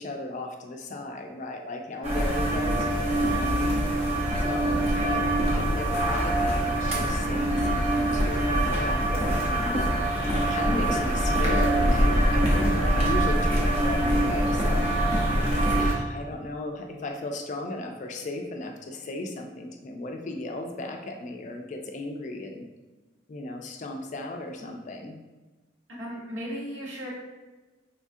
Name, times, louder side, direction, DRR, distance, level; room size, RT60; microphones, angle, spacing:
voice 1, 0.0-3.7 4.4-9.8 10.1-14.9 15.8-22.7 23.3-25.2, left 2 dB, 40° left, 3 dB, 0.3 m, -36 dB
sound 1, 2.0-15.9, right 1 dB, 35° right, 0.7 m, -24 dB
voice 2, 26.0-27.1, equal, 80° right, -6 dB, 1.3 m, -37 dB
4.2 x 2.3 x 2.6 m, 1.2 s
head